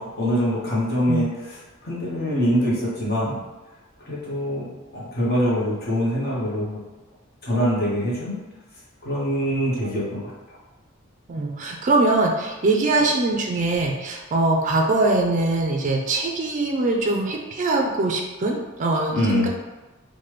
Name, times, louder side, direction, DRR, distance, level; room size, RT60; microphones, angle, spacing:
voice 1, 0.0-3.4 4.0-6.8 7.4-8.4 9.0-10.6 19.1-19.5, equal, 50° left, -6 dB, 0.8 m, -24 dB
voice 2, 11.3-19.5, right 2 dB, 40° right, 1 dB, 0.4 m, -22 dB
3.2 x 2.2 x 3.0 m, 1.2 s
head